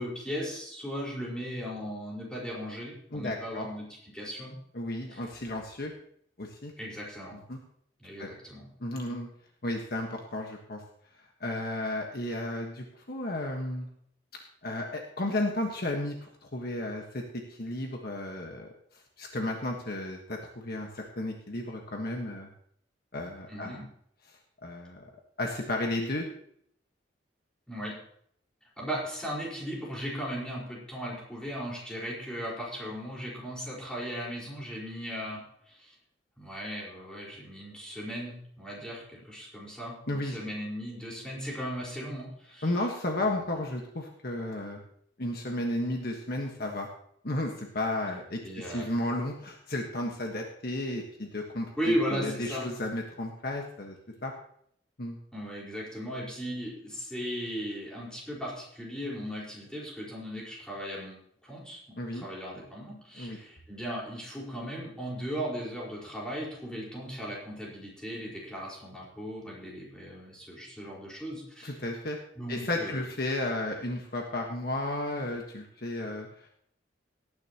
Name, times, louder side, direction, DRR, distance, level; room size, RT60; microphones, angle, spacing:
voice 1, 0.0-4.6 5.1-5.2 6.8-7.4 8.0-8.7 23.5-23.8 27.7-28.0 28.8-36.0 36.4-42.7 43.2-43.5 48.4-48.9 51.8-52.6 55.3-71.8 72.3-73.0, equal, 5° left, -5 dB, 4.7 m, -37 dB
voice 2, 3.1-3.7 4.7-5.9 6.4-6.7 7.5-7.6 8.2-8.3 8.8-9.3 9.6-10.8 11.4-13.9 14.6-17.2 17.5-18.7 19.2-22.5 23.1-23.8 24.6-25.0 25.4-26.3 40.1-40.4 42.6-44.8 45.2-46.9 47.2-54.0 54.2-54.3 55.0-55.2 62.0-62.2 63.2-63.4 71.6-72.2 72.5-76.3, left 1 dB, 50° left, 1 dB, 1.4 m, -33 dB
18.0 x 10.5 x 3.0 m, 0.67 s
head